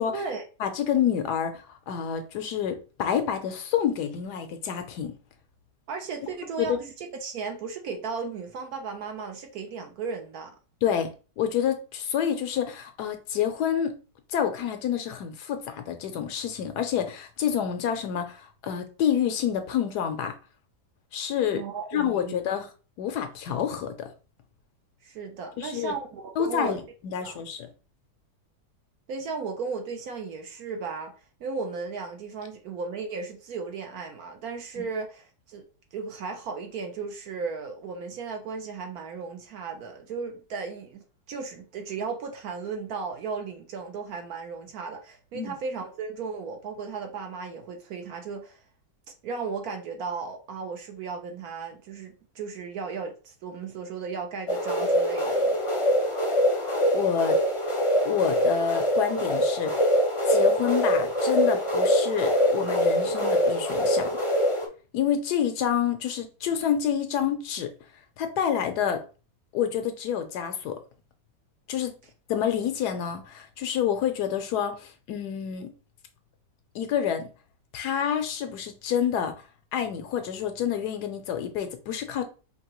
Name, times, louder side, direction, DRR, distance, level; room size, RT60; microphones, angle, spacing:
voice 1, 0.1-0.4 5.9-10.5 21.5-22.6 25.0-26.8 27.2-27.4 29.1-31.1 31.4-35.6 35.9-48.6 49.2-55.5, right 5 dB, 65° right, 1.1 m, -35 dB
voice 2, 0.6-5.1 6.6-6.8 10.8-11.1 11.4-14.0 14.3-20.4 21.1-21.6 21.9-22.7 23.0-24.1 25.6-25.9 26.4-27.7 34.8-34.9 45.3-45.5 56.9-57.4 58.0-59.7 60.3-64.1 64.9-67.7 68.2-69.0 69.5-70.8 71.7-71.9 72.3-75.7 76.7-77.3 77.7-79.3 79.7-82.2, left 9 dB, 75° left, 1.1 m, -28 dB
sound 1, 54.5-64.7, equal, 25° left, 0.6 m, -24 dB
4.6 x 2.9 x 2.9 m
omnidirectional pair, 1.9 m